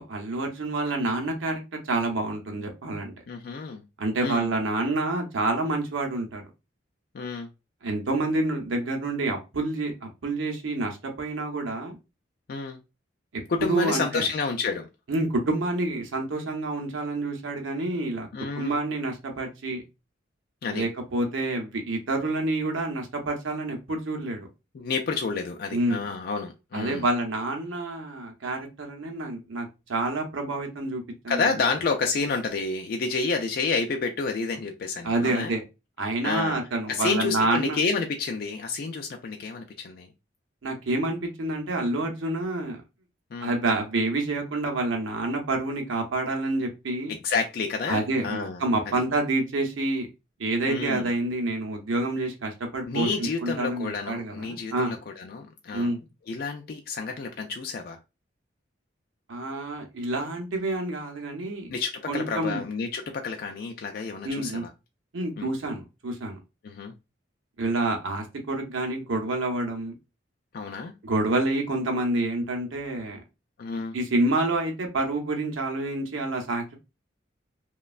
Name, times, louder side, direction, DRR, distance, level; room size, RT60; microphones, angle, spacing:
voice 1, 0.0-3.1 4.0-6.4 7.8-11.9 13.6-14.3 15.1-18.3 18.5-19.8 20.7-24.5 25.7-26.1 26.7-31.5 35.0-35.6 36.0-37.8 40.6-42.8 43.4-47.1 47.9-50.1 50.4-55.0 55.7-56.0 59.3-61.7 62.1-62.6 64.2-64.7 65.1-66.4 67.6-69.9 71.0-73.2 73.9-76.8, right 2 dB, 85° right, 0.7 m, -28 dB
voice 2, 3.3-3.8 4.2-4.5 7.1-7.5 12.5-12.8 13.5-14.9 18.3-18.8 20.6-20.9 24.7-27.0 31.3-35.5 36.2-36.6 36.9-40.1 43.3-43.5 47.1-48.6 48.9-49.0 50.7-51.1 52.9-56.0 56.3-58.0 61.7-64.7 65.4-65.5 66.6-66.9 70.5-70.9 73.6-73.9, left 4 dB, 50° left, 0.3 m, -29 dB
3.1 x 2.2 x 2.3 m
head